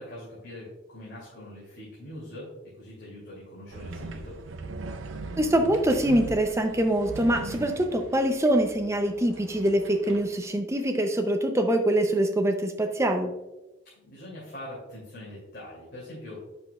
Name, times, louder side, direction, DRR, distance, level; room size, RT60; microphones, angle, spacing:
voice 1, 0.0-4.4 14.0-16.4, left 1 dB, 55° left, -7 dB, 2.5 m, -43 dB
sound 1, 3.7-10.5, right 3 dB, 90° right, 0.5 m, -40 dB
voice 2, 5.4-13.3, right 1 dB, 15° right, 5 dB, 0.5 m, -24 dB
8.1 x 6.8 x 2.3 m, 1.0 s
head